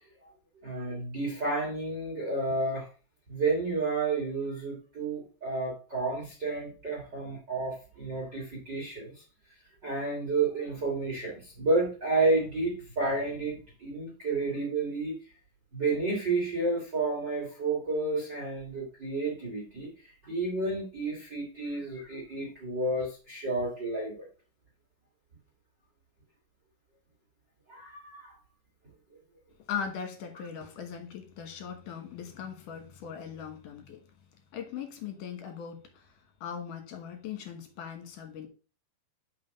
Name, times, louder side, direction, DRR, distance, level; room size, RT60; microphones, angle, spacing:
voice 1, 0.6-2.9 3.3-9.2 9.8-15.2 15.7-19.9 20.2-24.3 27.7-28.3, right 3 dB, 30° right, 2.5 m, -31 dB
voice 2, 29.7-34.0 34.5-36.1 36.4-38.5, left 7 dB, 60° left, 2.6 m, -39 dB
5.8 x 5.1 x 5.2 m
omnidirectional pair, 4.8 m